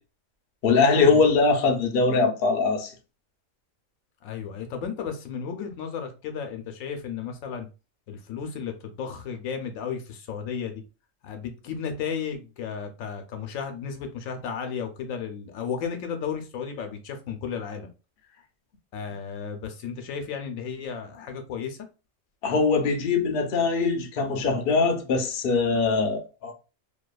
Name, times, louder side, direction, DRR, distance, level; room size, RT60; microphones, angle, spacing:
voice 1, 0.6-2.9 22.4-26.5, left 4 dB, 60° left, 0.6 m, -22 dB
voice 2, 4.2-7.7 8.1-10.7 11.2-17.9 18.9-21.8, left 6 dB, 80° left, 1.0 m, -34 dB
2.7 x 2.3 x 2.3 m
omnidirectional pair, 1.4 m